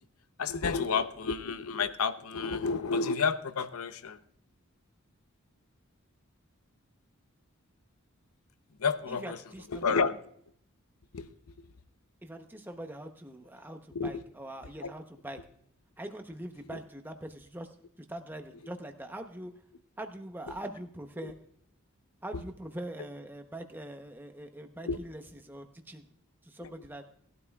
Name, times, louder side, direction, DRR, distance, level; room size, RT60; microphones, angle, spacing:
voice 1, 0.4-4.2 8.8-9.4 9.7-10.2 11.1-11.3 13.9-14.2 14.8-14.9 16.7-16.8 21.2-21.3 24.9-25.0 26.6-26.7, left 5 dB, 85° left, 12 dB, 0.7 m, -30 dB
voice 2, 9.1-10.0 12.2-15.4 16.0-17.7 18.1-19.5 20.0-21.4 22.2-26.1 26.4-27.0, right 1 dB, 10° right, 5 dB, 0.8 m, -43 dB
19.0 x 12.0 x 2.3 m, 0.67 s
head